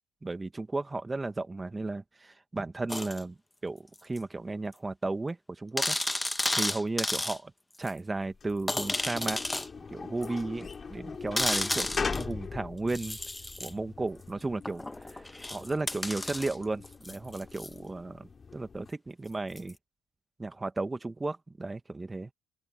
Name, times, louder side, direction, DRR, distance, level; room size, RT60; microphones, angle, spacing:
voice 1, 0.2-3.4 3.6-6.0 6.5-7.4 7.8-9.4 9.9-13.2 13.6-15.2 15.5-19.8 20.4-22.3, right 3 dB, 20° right, 2.4 m, -34 dB
sound 1, 2.9-3.2 4.2-4.3 4.7-4.8 5.0-5.1 5.8-7.4 7.9-8.0 8.7-9.7 10.2-10.3 11.4-12.3 12.9-13.7 14.7-17.7 19.6-19.7, left 2 dB, 15° left, 1.7 m, -32 dB
sound 2, 8.2-18.9, left 5 dB, 35° left, 4.5 m, -41 dB
open air
hypercardioid pair, 50°, 0 cm